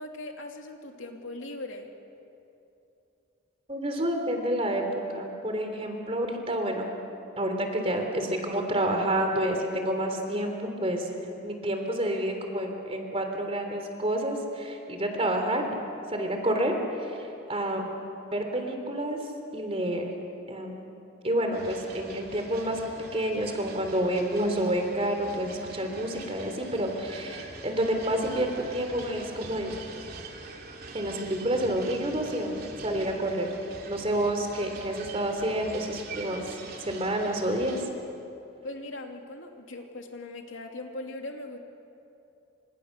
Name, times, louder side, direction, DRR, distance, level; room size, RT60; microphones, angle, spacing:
voice 1, 0.0-1.9 38.6-41.6, left 2 dB, 75° left, 2 dB, 2.8 m, -39 dB
voice 2, 3.7-6.9 7.4-11.1 11.4-15.6 16.1-16.7 17.0-18.0 18.3-19.2 19.5-20.1 20.5-20.9 21.2-22.8 23.1-29.9 30.9-33.5 33.9-36.5 36.8-37.8, right 1 dB, 30° right, 4 dB, 3.4 m, -29 dB
sound 1, 21.5-37.8, right 3 dB, 50° right, 3.0 m, -44 dB
29.5 x 27.0 x 6.7 m, 2.8 s
head